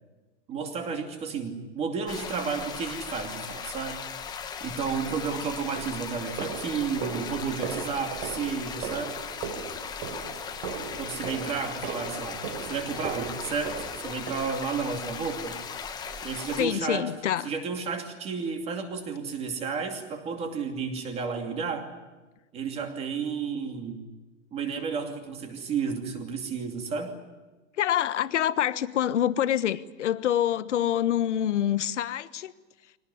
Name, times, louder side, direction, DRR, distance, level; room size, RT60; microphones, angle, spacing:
voice 1, 0.5-4.0 4.6-9.2 11.0-15.6 16.2-17.1 17.4-21.9 22.5-24.1 24.5-27.2, right 5 dB, 15° right, 2.7 m, -32 dB
sound 1, 2.1-16.7, left 6 dB, 10° left, 1.3 m, -38 dB
sound 2, 5.1-5.2 5.8-15.0 15.5-15.8 16.1-16.3 16.7-16.9 17.3-17.4 17.9-18.0, right 6 dB, 30° right, 3.5 m, -38 dB
voice 2, 16.5-17.5 27.8-32.5, left 11 dB, 75° left, 1.3 m, -26 dB
23.5 x 18.5 x 9.7 m
hypercardioid pair, 165°, 36 cm